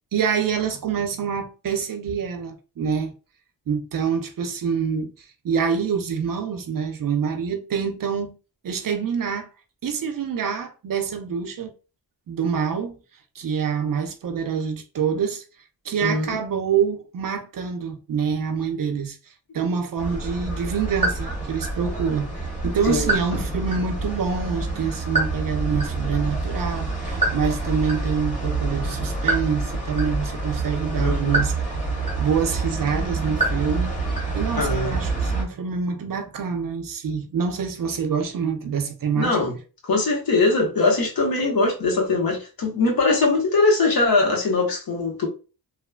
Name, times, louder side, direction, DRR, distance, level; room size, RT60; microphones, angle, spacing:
voice 1, 0.1-3.1 3.7-8.3 8.6-9.5 9.8-11.7 12.3-13.0 13.3-15.4 15.8-19.2 19.5-22.3 22.6-31.8 32.2-33.9 34.3-39.4, right 6 dB, 55° right, 0.6 m, -26 dB
voice 2, 16.0-16.4 22.8-23.1 31.0-31.4 34.6-35.0 39.1-39.6 39.8-45.3, left 3 dB, 65° left, 1.1 m, -21 dB
sound 1, 20.0-35.4, right 2 dB, 20° left, 1.3 m, -26 dB
3.0 x 2.1 x 2.3 m
cardioid pair, 85°, 39 cm